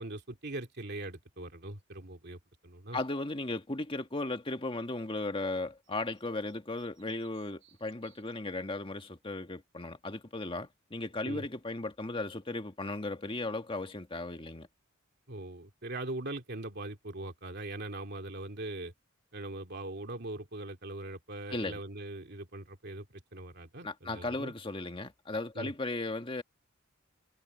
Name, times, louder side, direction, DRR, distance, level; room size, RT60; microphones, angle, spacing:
voice 1, 0.0-3.0 11.2-11.4 15.3-18.9 19.3-24.5 25.5-25.7, right 2 dB, 55° right, 2.6 m, -41 dB
voice 2, 2.9-14.7 21.5-21.8 23.8-26.4, left 2 dB, 25° left, 1.6 m, -36 dB
sound 1, 5.8-9.0, right 13 dB, 70° right, 7.5 m, -67 dB
head